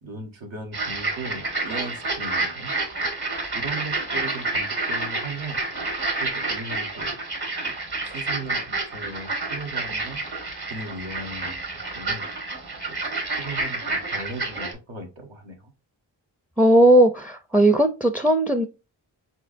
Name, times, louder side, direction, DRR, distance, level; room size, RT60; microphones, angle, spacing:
voice 1, 0.0-2.7 3.5-5.6 6.2-7.2 7.6-7.8 8.1-10.2 10.7-11.6 11.9-12.2 13.4-15.7, right 2 dB, 75° right, 1.4 m, -37 dB
sound 1, 0.7-14.7, right 3 dB, 55° right, 1.6 m, -29 dB
voice 2, 16.6-18.6, right 1 dB, 5° right, 0.4 m, -17 dB
4.4 x 4.1 x 2.6 m
cardioid pair, 45°, 47 cm